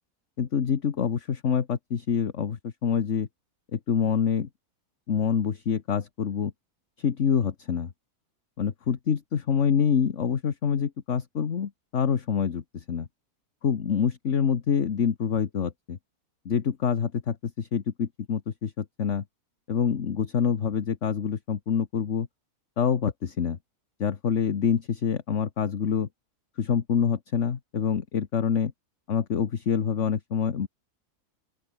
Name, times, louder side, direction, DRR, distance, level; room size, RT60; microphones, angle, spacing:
voice 1, 0.4-3.3 3.7-4.5 5.1-6.5 7.0-7.9 8.6-13.1 13.6-16.0 16.4-19.2 19.7-22.3 22.8-23.6 24.0-26.1 26.6-28.7 29.1-30.7, left 7 dB, 55° left, 1.5 m, -26 dB
open air
omnidirectional pair, 1.6 m